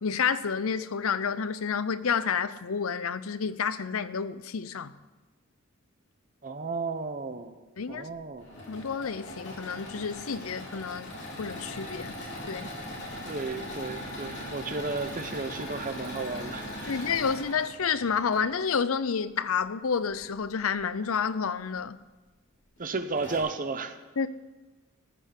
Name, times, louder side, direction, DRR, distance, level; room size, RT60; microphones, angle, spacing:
voice 1, 0.0-4.9 7.8-8.1 8.7-11.1 11.4-12.2 12.5-12.7 16.9-22.0 24.2-24.3, left 6 dB, 75° left, 0.6 m, -29 dB
voice 2, 6.4-7.6 7.9-8.5 13.3-17.1 22.8-24.0, right 3 dB, 40° right, 1.0 m, -33 dB
Engine / Mechanisms, 8.2-18.5 20.1-20.8 21.4-21.5 21.8-21.9 22.8-22.9 23.2-23.4, left 1 dB, 60° left, 3.8 m, -40 dB
14.5 x 6.5 x 9.3 m
head